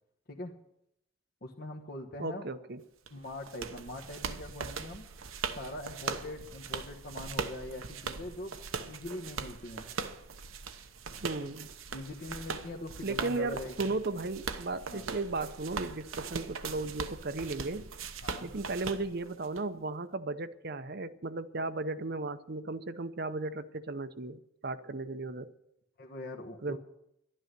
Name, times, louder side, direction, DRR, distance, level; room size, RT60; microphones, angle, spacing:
voice 1, 1.4-2.5 3.1-5.0 5.5-9.9 11.4-11.5 11.9-13.9 14.9-15.1 18.2-18.5 26.0-26.8, left 1 dB, 50° left, 1.3 m, -42 dB
voice 2, 2.2-2.8 11.2-11.7 13.0-17.9 18.4-25.5 26.6-26.8, right 3 dB, 55° right, 0.7 m, -35 dB
sound 1, 3.1-19.6, right 5 dB, 85° right, 1.0 m, -40 dB
12.0 x 11.5 x 6.7 m
head